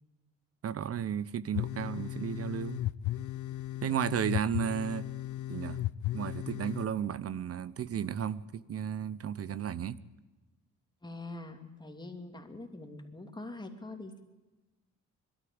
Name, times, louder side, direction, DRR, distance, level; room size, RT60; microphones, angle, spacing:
voice 1, 0.6-2.8 3.8-5.1 5.5-5.8 6.1-10.0, right 8 dB, 50° right, 0.9 m, -33 dB
sound 1, 1.5-6.9, left 14 dB, 80° left, 0.6 m, -35 dB
voice 2, 11.0-14.2, left 2 dB, 15° left, 3.0 m, -44 dB
23.0 x 13.0 x 8.7 m
cardioid pair, 90°, 30 cm